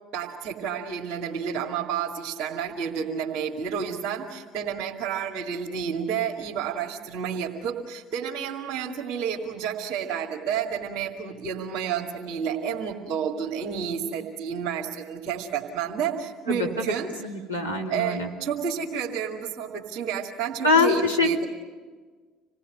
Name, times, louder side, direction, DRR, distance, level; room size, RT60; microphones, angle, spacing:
voice 1, 0.1-17.1 17.9-21.4, right 7 dB, 50° right, -2 dB, 2.3 m, -30 dB
voice 2, 16.5-16.9 17.2-18.3 20.6-21.4, left 3 dB, 90° left, -2 dB, 2.4 m, -24 dB
27.0 x 19.0 x 9.5 m, 1.5 s
figure-of-eight pair, 60°, 0 cm